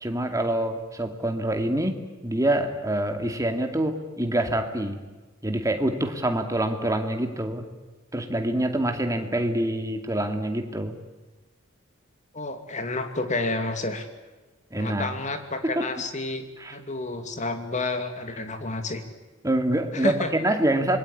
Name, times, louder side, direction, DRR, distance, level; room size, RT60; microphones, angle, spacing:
voice 1, 0.0-5.0 5.4-7.7 8.1-11.0 14.7-15.1 15.6-15.9 16.6-16.7 19.4-21.0, right 1 dB, 15° right, 5 dB, 2.4 m, -26 dB
voice 2, 12.3-14.1 14.8-19.0 19.9-20.3, left 2 dB, 35° left, 7 dB, 2.6 m, -30 dB
26.0 x 22.0 x 9.8 m, 1.2 s
head